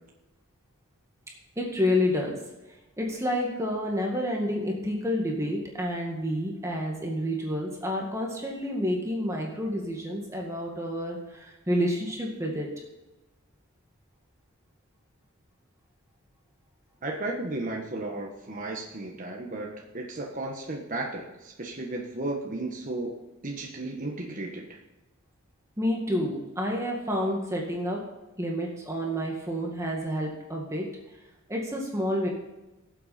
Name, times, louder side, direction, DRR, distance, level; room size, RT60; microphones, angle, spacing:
voice 1, 1.6-2.3 3.0-12.7 25.8-28.0 28.4-30.9 31.5-32.3, left 1 dB, 15° right, -1 dB, 1.9 m, -29 dB
voice 2, 17.0-23.2 23.4-24.8, right 2 dB, 40° right, -1 dB, 1.3 m, -34 dB
18.5 x 7.9 x 4.3 m, 1.0 s
head